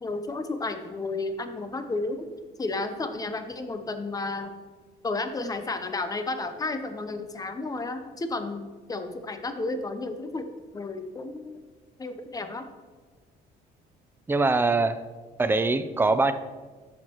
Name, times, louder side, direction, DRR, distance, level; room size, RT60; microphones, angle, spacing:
voice 1, 0.0-2.3 2.6-4.5 5.0-10.5 10.7-11.6 12.0-12.6, left 3 dB, 20° left, 8 dB, 0.7 m, -32 dB
voice 2, 14.3-15.0 15.4-16.3, right 3 dB, 15° right, 11 dB, 0.4 m, -22 dB
10.5 x 6.5 x 3.0 m, 1.4 s
cardioid pair, 110°, 17 cm